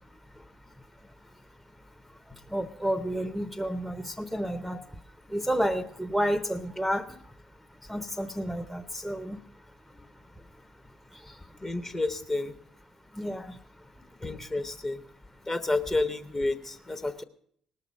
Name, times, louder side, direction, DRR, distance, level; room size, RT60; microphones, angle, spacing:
voice 1, 2.5-4.8 5.3-7.0 7.9-9.4 11.3-11.4 13.1-13.6, equal, ahead, 6 dB, 0.8 m, -30 dB
voice 2, 11.6-12.6 14.2-15.0 15.5-17.2, left 2 dB, 20° left, 7 dB, 1.1 m, -30 dB
18.5 x 6.6 x 6.3 m, 0.63 s
hypercardioid pair, 55°, 2 cm